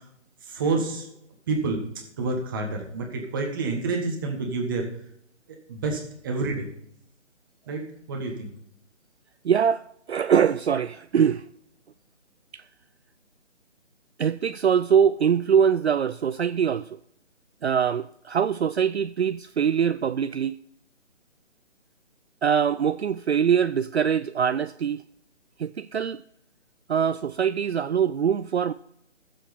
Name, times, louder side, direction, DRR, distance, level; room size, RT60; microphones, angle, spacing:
voice 1, 0.4-1.1 1.5-1.8 2.2-4.9 5.5-6.7 7.7-8.5, right 3 dB, 15° right, 1.5 m, -28 dB
voice 2, 9.4-11.4 12.5-12.6 14.2-16.9 17.6-20.6 22.4-25.0 25.6-26.2 26.9-28.7, right 7 dB, 60° right, 0.5 m, -23 dB
17.5 x 7.6 x 3.5 m
hypercardioid pair, 165°, 37 cm